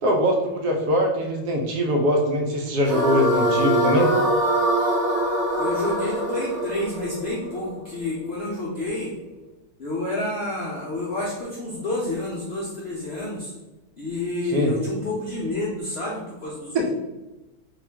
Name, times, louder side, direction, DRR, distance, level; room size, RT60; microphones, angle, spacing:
voice 1, 0.0-4.1 14.5-14.7 16.7-16.9, equal, 70° right, 1 dB, 1.0 m, -22 dB
sound 1, 2.8-8.1, right 1 dB, 40° right, 0.8 m, -23 dB
voice 2, 5.6-9.1 9.8-13.5 14.0-16.9, left 2 dB, 65° left, -5 dB, 0.6 m, -29 dB
3.6 x 2.4 x 3.3 m, 1.1 s
omnidirectional pair, 2.0 m